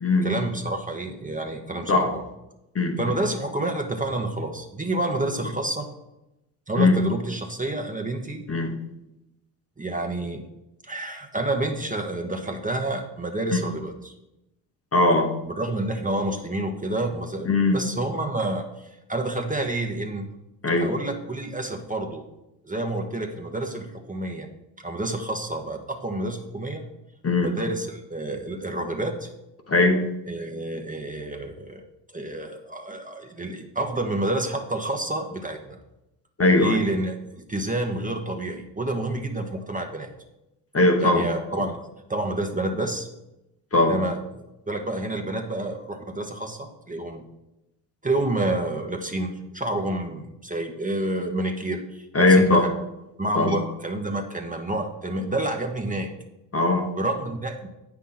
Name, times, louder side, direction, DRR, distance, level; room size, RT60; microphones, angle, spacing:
voice 1, 0.2-2.2 3.0-5.9 6.7-8.4 9.8-10.4 10.8-14.1 15.5-20.3 20.8-22.2 22.6-24.5 24.8-26.8 27.4-29.3 30.3-31.8 32.1-35.8 36.6-40.1 41.0-41.8 42.1-43.1 43.9-47.2 48.0-52.7 53.2-56.1 57.0-57.7, right 2 dB, 15° right, 3 dB, 1.0 m, -29 dB
voice 2, 14.9-15.3 17.5-17.8 20.6-20.9 27.2-27.5 29.7-30.0 36.4-36.8 40.7-41.2 41.6-41.7 43.7-44.0 52.1-52.7 53.3-53.6 56.5-56.9, left 2 dB, 30° left, 4 dB, 1.1 m, -19 dB
8.1 x 5.9 x 4.0 m, 0.91 s
supercardioid pair, 60°, 49 cm